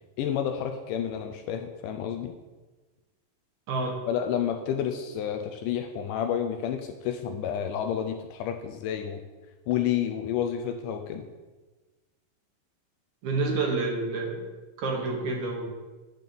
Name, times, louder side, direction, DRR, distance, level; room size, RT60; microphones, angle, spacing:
voice 1, 0.2-2.3 4.1-9.2 9.7-11.2, left 9 dB, 80° left, 5 dB, 2.0 m, -30 dB
voice 2, 3.7-4.0 13.2-14.5 14.8-15.7, right 3 dB, 70° right, 1 dB, 2.1 m, -28 dB
9.1 x 4.0 x 6.8 m, 1.2 s
omnidirectional pair, 4.0 m